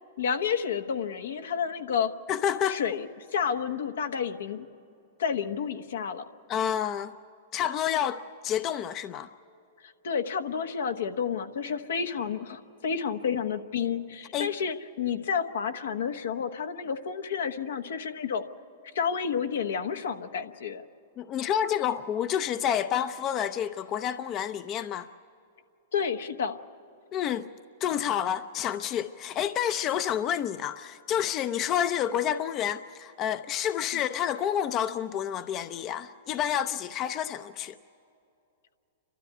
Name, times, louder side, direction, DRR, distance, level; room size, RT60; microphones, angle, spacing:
voice 1, 0.2-2.1 2.7-4.7 5.2-6.2 9.8-18.4 18.9-20.8 25.9-26.6 33.9-34.0, left 7 dB, 80° left, 1.2 m, -30 dB
voice 2, 2.3-2.8 6.5-7.1 7.5-9.3 14.3-14.5 21.2-25.1 27.1-27.5 27.8-37.8, left 9 dB, 35° left, 0.6 m, -29 dB
29.5 x 13.0 x 9.5 m
hypercardioid pair, 125°, 0 cm